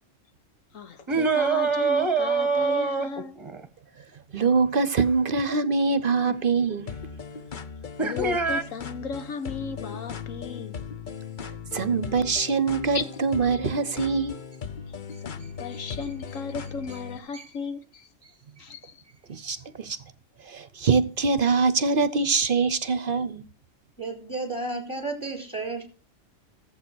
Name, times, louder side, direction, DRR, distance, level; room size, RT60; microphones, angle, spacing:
voice 1, 0.7-3.4 8.0-10.8 12.9-13.0 15.2-18.1 18.6-19.0, left 5 dB, 75° left, 1.6 m, -35 dB
sound 1, 1.1-3.7 6.2-6.4 8.0-8.6, right 4 dB, 25° right, 1.2 m, -24 dB
voice 2, 4.3-6.9 11.7-14.4 17.3-17.4 19.3-20.0 20.5-23.4, right 4 dB, 50° right, 0.9 m, -24 dB
sound 2, 6.9-17.2, left 6 dB, 45° left, 0.9 m, -38 dB
voice 3, 24.0-25.8, right 3 dB, 15° left, 4.5 m, -32 dB
14.0 x 7.9 x 6.2 m
omnidirectional pair, 1.4 m